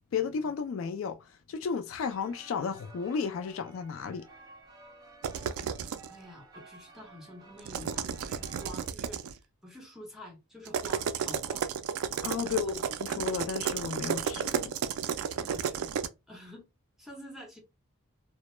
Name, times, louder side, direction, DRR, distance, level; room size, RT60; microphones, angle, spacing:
voice 1, 0.1-4.2 12.2-12.7 13.0-14.8, left 6 dB, 65° left, 0.3 m, -33 dB
sound 1, 2.0-8.9, right 2 dB, 20° right, 0.5 m, -54 dB
sound 2, 5.2-6.1 7.6-9.3 10.7-16.1, right 7 dB, 80° right, 0.3 m, -32 dB
voice 2, 6.1-11.7 12.4-12.9 15.3-15.9 16.3-16.7 17.0-17.6, equal, ahead, 0.9 m, -48 dB
2.1 x 2.0 x 3.0 m
head